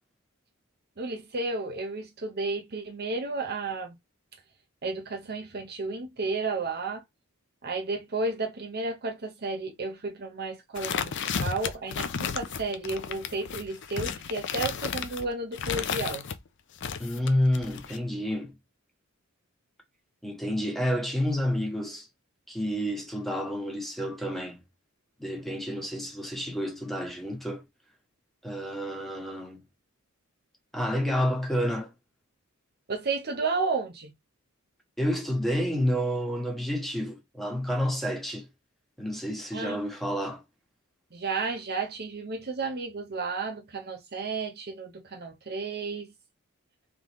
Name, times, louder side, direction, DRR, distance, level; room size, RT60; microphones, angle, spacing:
voice 1, 1.0-4.0 4.8-7.0 7.6-11.1 11.4-16.2 32.9-34.1 39.5-39.8 41.1-46.1, right 3 dB, 50° right, 0.8 m, -32 dB
sound 1, 10.7-16.4 16.8-18.0, left 7 dB, 55° left, 0.6 m, -33 dB
voice 2, 17.0-18.5 20.2-22.1 22.5-24.6 25.2-27.6 28.4-29.6 30.7-31.9 35.0-38.5 39.0-40.4, equal, ahead, 1.4 m, -29 dB
3.9 x 3.7 x 3.0 m
head